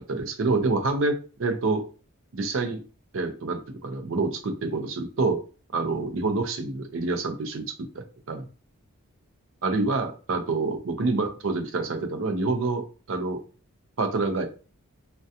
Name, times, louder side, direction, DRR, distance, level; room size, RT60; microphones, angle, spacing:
voice 1, 0.1-1.9 2.3-2.8 3.1-5.4 5.7-8.5 9.6-13.4 14.0-14.5, right 3 dB, 65° right, 7 dB, 0.5 m, -27 dB
2.3 x 2.2 x 2.6 m, 0.35 s
head